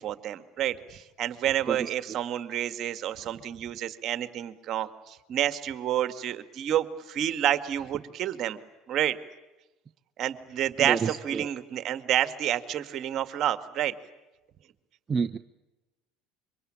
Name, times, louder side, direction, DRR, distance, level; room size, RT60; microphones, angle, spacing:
voice 1, 0.0-8.6 8.9-9.2 10.2-13.9, right 11 dB, 50° right, 10 dB, 2.0 m, -29 dB
voice 2, 10.8-11.5 15.1-15.4, right 6 dB, 30° right, 7 dB, 1.0 m, -29 dB
26.5 x 24.5 x 8.9 m, 1.1 s
hypercardioid pair, 70°, 0 cm